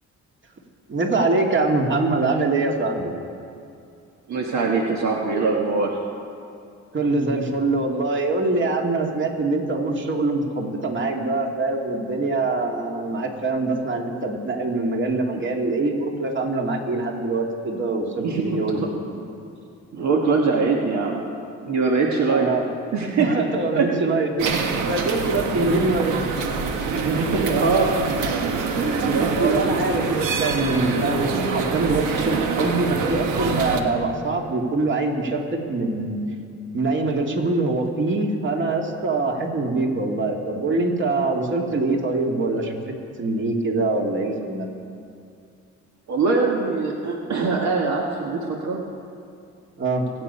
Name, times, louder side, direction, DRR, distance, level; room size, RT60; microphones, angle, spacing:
voice 1, 0.9-3.1 6.9-18.8 22.3-22.7 23.2-26.2 28.8-36.2 36.7-42.8 43.2-44.7 49.8-50.1, right 3 dB, 40° right, 1 dB, 2.3 m, -24 dB
voice 2, 4.3-6.0 15.3-15.4 18.2-19.2 19.9-21.2 21.6-22.5 22.9-23.3 23.7-23.9 25.5-25.9 26.9-28.0 29.0-29.7 46.1-48.8, right 4 dB, 65° right, 0 dB, 1.6 m, -23 dB
sound 1, 24.4-33.8, right 5 dB, 90° right, 1.4 m, -25 dB
25.0 x 8.5 x 5.6 m, 2.5 s
cardioid pair, 90°, 30 cm